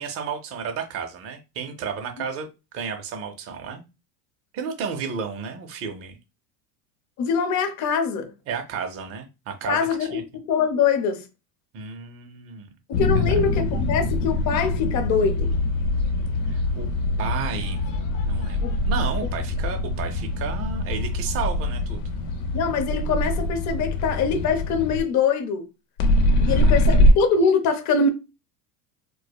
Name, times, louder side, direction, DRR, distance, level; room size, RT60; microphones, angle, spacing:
voice 1, 0.0-2.5 2.7-3.8 4.5-6.2 8.5-10.2 11.7-12.7 13.1-13.4 16.5-16.9 17.2-17.9 18.2-22.1 26.4-26.7, right 6 dB, 30° right, 0.6 m, -32 dB
voice 2, 7.2-8.3 9.7-11.3 12.9-15.5 18.6-18.7 22.5-25.7 26.4-28.1, left 5 dB, 35° left, 0.7 m, -23 dB
sound 1, 12.9-25.0 26.0-27.1, left 1 dB, 80° left, 1.0 m, -23 dB
4.6 x 2.1 x 2.3 m
supercardioid pair, 145°, 48 cm